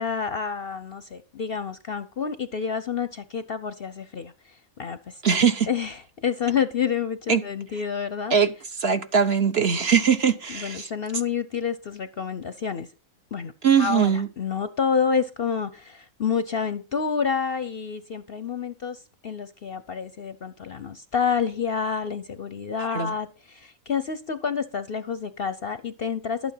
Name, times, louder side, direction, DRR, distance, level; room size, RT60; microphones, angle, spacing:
voice 1, 0.0-4.3 4.8-5.2 5.7-8.3 10.5-12.9 13.3-13.5 13.8-26.5, left 6 dB, 50° left, 0.7 m, -28 dB
voice 2, 5.2-5.7 7.3-7.4 8.3-10.9 13.6-14.3 22.8-23.1, right 7 dB, 50° right, 1.1 m, -21 dB
12.0 x 8.8 x 5.5 m
omnidirectional pair, 1.5 m